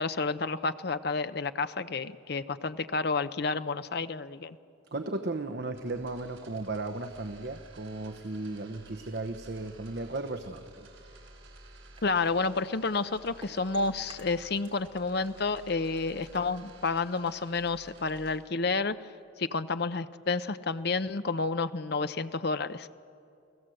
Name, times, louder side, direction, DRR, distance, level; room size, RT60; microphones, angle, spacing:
voice 1, 0.0-4.6 12.0-19.0 19.4-22.9, left 4 dB, 55° left, 12 dB, 0.7 m, -30 dB
voice 2, 4.9-10.9, right 2 dB, 55° right, 6 dB, 1.0 m, -35 dB
sound 1, 5.7-18.4, right 2 dB, 80° right, 5.0 m, -53 dB
sound 2, 11.9-14.9 15.2-17.5, right 2 dB, 25° right, 2.4 m, -56 dB
30.0 x 16.0 x 7.8 m, 2.5 s
head